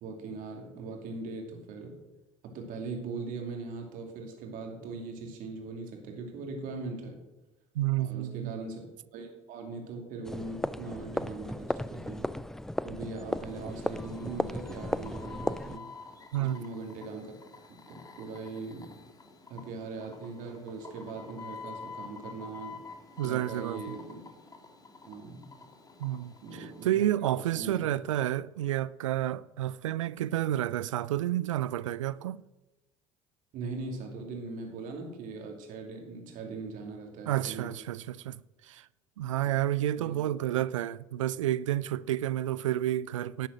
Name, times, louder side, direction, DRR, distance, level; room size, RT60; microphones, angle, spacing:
voice 1, 0.0-2.0 2.5-7.2 8.0-8.8 9.1-12.3 12.8-15.9 16.4-17.3 17.9-18.9 19.5-22.8 23.2-24.2 25.1-25.5 26.4-27.8 33.5-37.7 40.0-40.2, right 3 dB, 55° right, 2.7 m, -40 dB
voice 2, 7.8-8.6 16.3-16.6 23.2-23.8 26.0-26.3 26.8-32.4 37.3-38.4 38.7-38.9 39.2-43.5, right 13 dB, 80° right, 0.4 m, -30 dB
sound 1, 10.2-15.8, left 1 dB, 5° left, 0.3 m, -35 dB
sound 2, 13.3-26.9, left 4 dB, 25° left, 2.0 m, -48 dB
11.0 x 7.7 x 6.2 m
hypercardioid pair, 65°, 16 cm